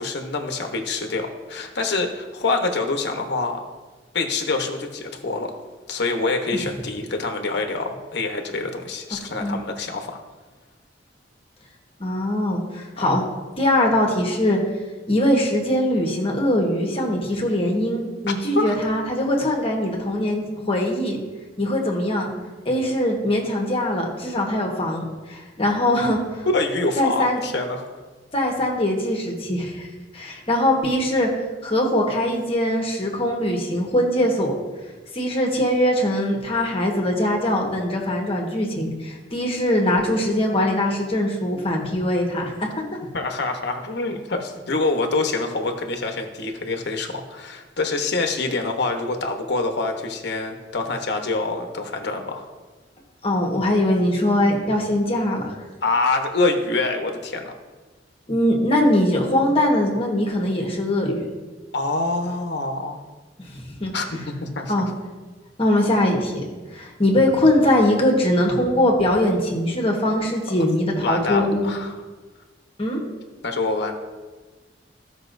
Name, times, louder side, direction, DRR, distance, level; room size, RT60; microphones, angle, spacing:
voice 1, 0.0-3.6 4.1-10.2 13.0-13.1 18.5-18.8 26.5-28.0 43.1-52.5 55.8-57.5 61.7-63.0 63.9-64.9 70.9-72.0 73.4-74.0, left 3 dB, 65° left, 4 dB, 1.0 m, -26 dB
voice 2, 12.0-13.2 13.6-14.6 15.1-21.2 21.6-22.3 22.6-26.5 27.0-27.4 28.3-29.9 30.1-31.3 31.6-34.5 35.1-42.7 53.2-55.5 58.3-61.3 63.5-63.9 64.7-64.9 65.6-66.4 66.7-71.7 72.8-73.0, left 1 dB, 30° left, 0 dB, 1.3 m, -21 dB
15.0 x 5.5 x 2.6 m, 1.3 s
head